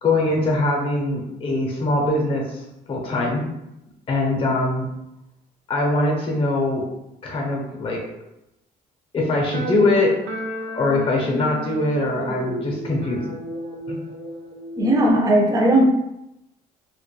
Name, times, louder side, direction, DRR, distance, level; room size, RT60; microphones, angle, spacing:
voice 1, 0.0-3.5 4.1-4.9 5.7-6.9 7.2-8.0 9.1-10.2 10.7-13.3 13.9-14.0, left 2 dB, 35° left, -1 dB, 0.6 m, -22 dB
sound 1, 9.5-15.1, right 1 dB, 85° right, 0.6 m, -32 dB
voice 2, 14.8-15.8, right 1 dB, 20° right, 1 dB, 0.5 m, -17 dB
2.2 x 2.0 x 3.1 m, 0.87 s
cardioid pair, 110°, 17 cm